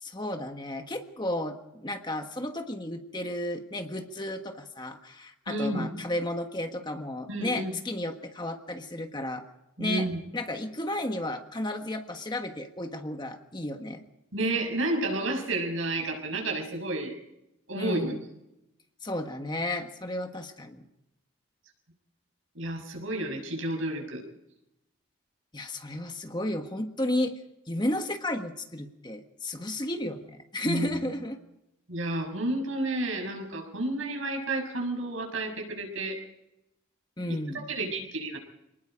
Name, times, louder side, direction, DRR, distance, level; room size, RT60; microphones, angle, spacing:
voice 1, 0.0-9.4 9.8-10.1 10.3-14.0 17.8-18.2 19.0-20.9 25.5-27.4 27.7-31.4 37.2-37.6, left 1 dB, 20° left, 5 dB, 1.5 m, -33 dB
voice 2, 5.5-5.9 7.3-7.8 9.8-10.2 14.3-17.1 17.7-18.2 22.5-24.2 30.6-31.0 31.9-36.2 37.7-38.4, right 2 dB, 70° right, 2 dB, 6.5 m, -31 dB
27.0 x 19.5 x 5.1 m, 0.87 s
head